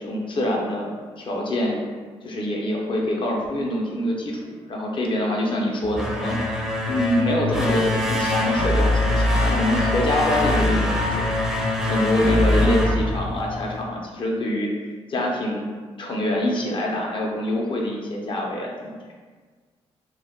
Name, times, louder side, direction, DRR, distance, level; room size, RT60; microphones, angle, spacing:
voice 1, 0.0-1.8 2.2-14.7 15.1-15.7 16.0-19.0, left 1 dB, 50° left, -1 dB, 0.7 m, -25 dB
sound 1, 5.8-13.8, left 1 dB, 5° right, 0.6 m, -23 dB
2.3 x 2.2 x 3.5 m, 1.5 s
supercardioid pair, 70°, 11 cm